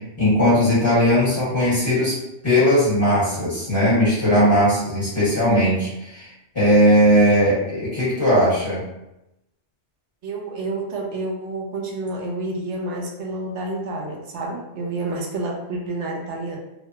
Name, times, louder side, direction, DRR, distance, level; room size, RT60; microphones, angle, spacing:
voice 1, 0.2-2.2 2.4-6.3 6.5-8.8, equal, 25° left, -10 dB, 1.4 m, -18 dB
voice 2, 10.2-16.6, right 2 dB, 75° right, -1 dB, 1.0 m, -29 dB
2.9 x 2.2 x 2.8 m, 0.91 s
omnidirectional pair, 1.2 m